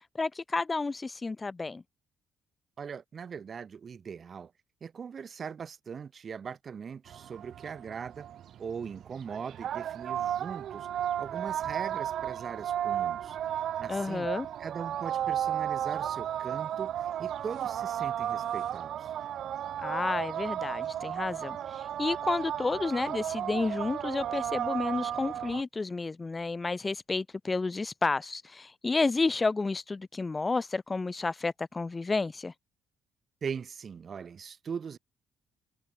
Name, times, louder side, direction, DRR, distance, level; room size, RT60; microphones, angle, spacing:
voice 1, 0.1-1.8 13.9-14.5 19.8-21.6 22.0-32.5, left 3 dB, 25° left, 2.1 m, -31 dB
voice 2, 2.8-4.5 4.8-8.3 8.6-10.9 11.2-13.4 13.8-14.3 14.6-19.2 33.4-35.0, right 6 dB, 45° right, 6.1 m, -40 dB
sound 1, 7.1-25.6, right 10 dB, 70° right, 1.0 m, -34 dB
cardioid pair, 90°, 0 cm